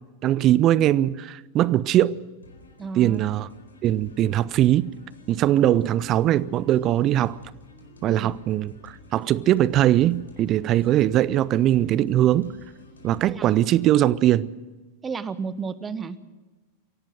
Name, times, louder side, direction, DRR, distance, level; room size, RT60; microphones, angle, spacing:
voice 1, 0.2-2.2 3.0-3.5 3.8-4.9 5.3-7.4 8.0-12.6 13.0-14.5, right 12 dB, 35° right, 0.6 m, -21 dB
sound 1, 2.4-13.8, left 3 dB, 75° left, 4.4 m, -50 dB
voice 2, 2.8-3.2 8.1-8.3 13.2-13.5 15.0-16.2, right 5 dB, 20° right, 1.2 m, -32 dB
24.0 x 17.0 x 6.4 m
figure-of-eight pair, 90°, 0 cm